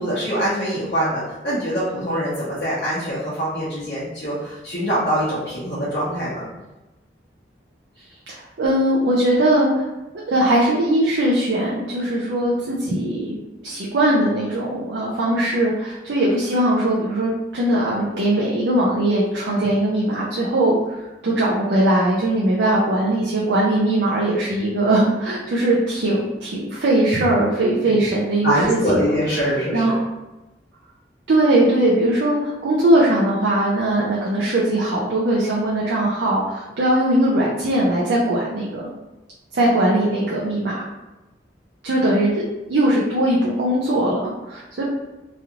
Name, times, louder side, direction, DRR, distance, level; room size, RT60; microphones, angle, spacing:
voice 1, 0.0-6.5 28.4-29.9, equal, 55° left, -11 dB, 0.8 m, -23 dB
voice 2, 8.3-9.9 10.3-29.0 29.4-30.0 31.3-38.9 39.5-40.9 41.8-42.4 42.7-44.8, right 1 dB, 85° right, -5 dB, 0.5 m, -20 dB
3.1 x 2.4 x 2.9 m, 1.0 s
head